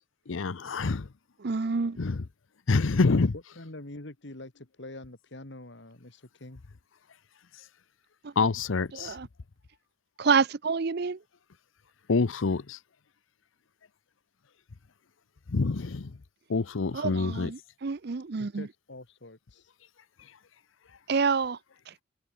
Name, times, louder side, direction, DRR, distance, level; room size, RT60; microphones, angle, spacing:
voice 1, 0.3-1.1 2.0-2.2 2.7-3.3 7.5-7.7 8.4-9.2 12.1-12.8 15.5-16.2 16.5-17.5 20.2-20.4, left 4 dB, 75° left, 0.7 m, -27 dB
voice 2, 1.4-2.0 8.2-8.3 8.9-9.3 10.2-11.2 16.9-18.7 21.1-21.6 21.9-22.0, right 5 dB, 55° right, 0.6 m, -28 dB
voice 3, 3.3-6.6 18.4-19.7, left 1 dB, 60° left, 2.2 m, -45 dB
head